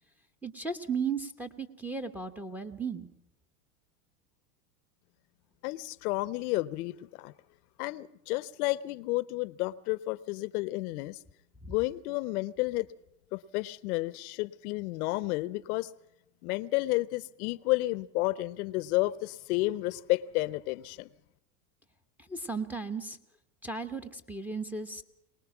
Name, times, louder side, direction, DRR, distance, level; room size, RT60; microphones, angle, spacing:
voice 1, 0.4-3.1 22.3-23.2 23.6-25.0, right 4 dB, 5° right, 1.0 m, -35 dB
voice 2, 5.6-7.3 7.8-11.2 11.7-12.9 13.3-15.9 16.4-21.1, left 20 dB, 65° left, 0.8 m, -31 dB
23.5 x 19.5 x 6.0 m
supercardioid pair, 125°, 47 cm